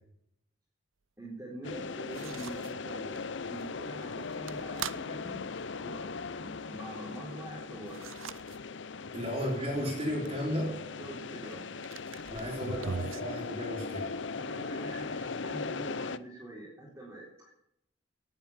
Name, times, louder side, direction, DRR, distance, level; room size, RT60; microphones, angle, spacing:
voice 1, 1.2-6.1 6.4-8.0 11.0-11.8 12.4-12.9 14.3-17.5, right 1 dB, 10° right, -6 dB, 4.2 m, -45 dB
sound 1, 1.6-16.2, left 4 dB, 70° left, 0.6 m, -39 dB
sound 2, 2.1-2.7 3.2-3.3 3.6-3.7 4.0-5.0 7.8-8.6 9.0-9.1 10.3-10.4 11.5-11.6 11.8-13.2, right 6 dB, 85° right, 0.7 m, -40 dB
voice 2, 9.1-10.8 12.3-14.1, equal, 30° right, -3 dB, 4.8 m, -34 dB
18.5 x 8.8 x 7.4 m, 0.79 s
head